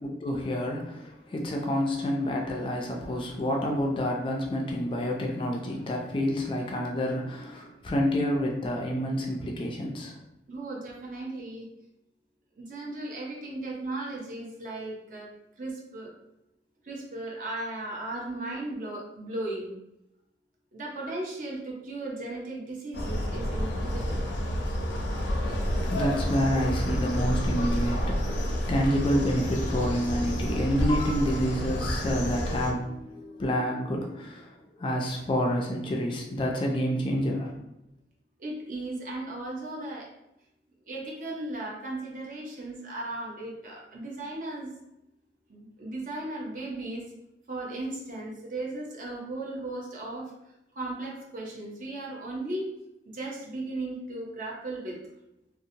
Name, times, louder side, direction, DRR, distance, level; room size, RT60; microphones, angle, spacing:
voice 1, 0.0-10.1 25.0-37.5, equal, 30° left, 0 dB, 0.3 m, -29 dB
voice 2, 10.5-11.7 12.6-16.1 16.8-19.7 20.7-24.2 38.4-40.1 40.9-44.7 45.5-47.1 47.5-50.3 50.7-52.7 53.1-55.0, right 2 dB, 50° right, -2 dB, 0.6 m, -36 dB
sound 1, 22.9-32.7, equal, 90° left, 0.5 m, -29 dB
2.7 x 2.1 x 2.7 m, 0.88 s
head